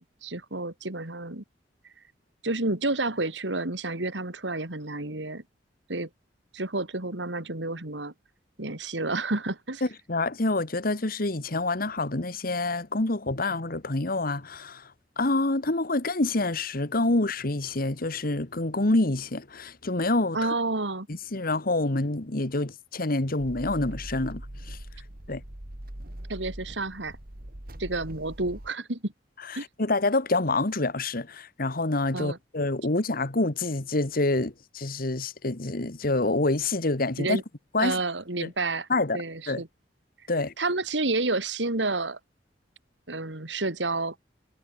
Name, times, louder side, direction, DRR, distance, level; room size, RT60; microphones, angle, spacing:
voice 1, 0.0-1.4 2.4-5.4 5.9-6.1 6.5-8.1 8.6-9.8 20.3-21.1 26.3-27.2 27.8-29.1 29.6-29.7 32.1-32.4 37.2-37.4 37.8-38.9 39.1-39.7 40.6-42.2 43.1-44.1, right 2 dB, 85° right, 3.1 m, -30 dB
voice 2, 9.8-14.9 15.2-20.5 21.1-24.4 24.7-24.8 25.3-25.4 29.5-37.4 37.7-38.0 38.4-38.5 38.9-39.2 39.5-39.6 40.3-40.5, left 2 dB, 55° left, 1.7 m, -27 dB
sound 1, 23.4-28.7, right 1 dB, 55° right, 2.5 m, -41 dB
head